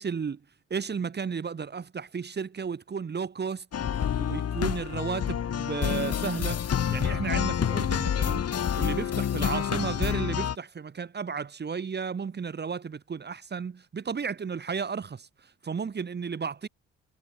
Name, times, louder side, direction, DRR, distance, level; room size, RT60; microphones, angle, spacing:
voice 1, 0.0-0.4 0.7-3.6 4.2-8.5 8.8-16.7, right 6 dB, 35° right, 1.5 m, -33 dB
sound 1, 3.7-10.6, left 9 dB, 55° left, 2.7 m, -28 dB
cardioid pair, 90°, 30 cm